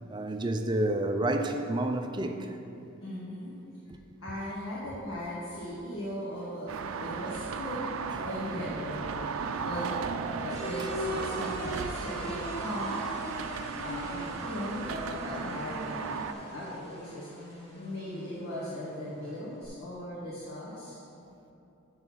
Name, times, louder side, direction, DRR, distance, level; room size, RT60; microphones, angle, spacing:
voice 1, 0.1-2.6 10.8-10.9, right 1 dB, 20° right, 5 dB, 0.4 m, -29 dB
voice 2, 3.0-3.5 4.2-6.7 7.0-9.2 9.6-9.9 10.2-13.0 13.8-17.3 17.7-21.3, equal, 90° left, -8 dB, 1.6 m, -38 dB
sound 1, 6.7-16.3, right 5 dB, 85° right, 0.4 m, -35 dB
sound 2, 10.5-19.7, equal, 30° left, 1.4 m, -41 dB
6.8 x 5.6 x 6.2 m, 2.8 s
head